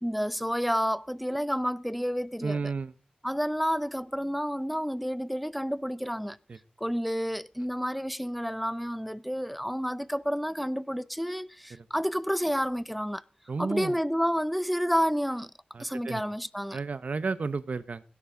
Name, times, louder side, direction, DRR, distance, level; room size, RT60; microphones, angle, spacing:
voice 1, 0.0-2.7 3.2-6.4 6.8-13.2 13.6-15.5 15.8-16.8, equal, ahead, 0.7 m, -30 dB
voice 2, 2.4-2.9 6.5-6.6 11.7-11.8 13.5-13.9 15.7-16.2 16.7-18.0, right 4 dB, 65° right, 1.1 m, -32 dB
16.5 x 10.0 x 5.1 m
wide cardioid pair, 95°, 3 cm